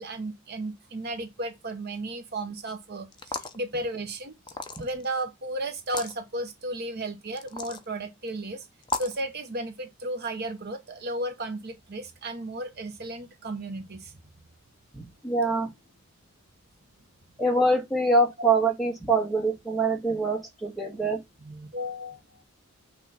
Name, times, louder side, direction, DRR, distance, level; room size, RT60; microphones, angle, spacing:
voice 1, 0.0-4.3 4.8-8.7 9.0-14.1 21.4-22.4, right 1 dB, 45° right, 0.9 m, -34 dB
sound 1, 3.1-3.6 4.5-5.1 5.8-6.1 7.4-7.8 8.8-9.2, left 4 dB, 20° left, 0.5 m, -34 dB
voice 2, 14.9-15.7 17.4-21.2, right 2 dB, ahead, 1.5 m, -24 dB
6.2 x 3.2 x 5.6 m
head